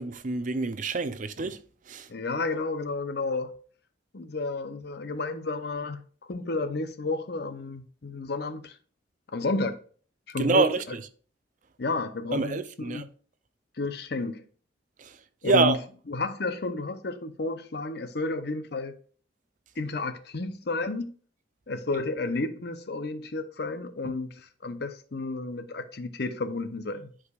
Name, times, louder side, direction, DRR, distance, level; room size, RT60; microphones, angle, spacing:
voice 1, 0.0-1.6 1.9-2.1 10.4-10.8 12.3-13.1 15.0-15.2 15.4-15.8, right 3 dB, 40° right, 0.5 m, -26 dB
voice 2, 2.1-3.5 4.1-6.0 6.3-8.8 9.3-9.8 10.3-10.7 11.8-13.0 13.8-14.4 15.4-15.8 16.1-18.9 19.8-21.1 21.7-27.1, left 3 dB, 55° left, 0.7 m, -31 dB
11.0 x 4.9 x 2.4 m
head